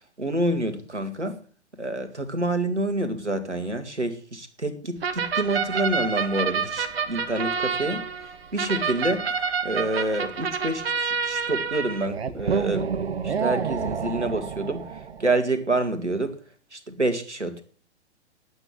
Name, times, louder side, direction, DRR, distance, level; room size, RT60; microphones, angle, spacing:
voice 1, 0.2-1.4 1.8-9.3 9.6-12.9 13.2-16.4 16.7-17.6, right 2 dB, 90° right, 8 dB, 2.2 m, -27 dB
sound 1, 5.0-15.4, right 6 dB, 65° right, 1.4 m, -28 dB
10.0 x 8.9 x 7.6 m, 0.42 s
figure-of-eight pair, 115°, 34 cm